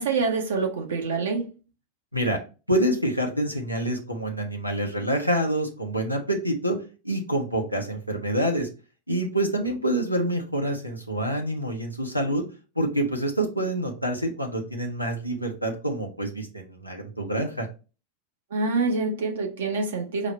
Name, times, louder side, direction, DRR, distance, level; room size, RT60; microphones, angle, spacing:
voice 1, 0.0-1.5 18.5-20.3, right 4 dB, 60° right, 0.9 m, -26 dB
voice 2, 2.7-6.8 7.0-8.7 9.1-12.5 12.8-17.7, right 1 dB, 90° right, 0.7 m, -27 dB
4.9 x 2.0 x 4.2 m
figure-of-eight pair, 90°, 0 cm